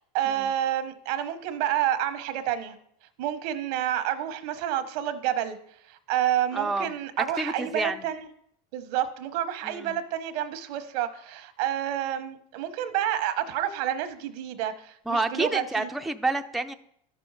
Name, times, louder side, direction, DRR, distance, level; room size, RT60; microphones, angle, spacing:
voice 1, 0.1-2.8 3.2-5.6 5.9-8.3 8.7-15.9, right 11 dB, 80° right, 10 dB, 1.1 m, -29 dB
voice 2, 6.5-8.1 9.6-10.0 15.1-16.7, right 2 dB, ahead, 6 dB, 0.4 m, -29 dB
12.0 x 6.1 x 4.8 m, 0.70 s
supercardioid pair, 115°, 20 cm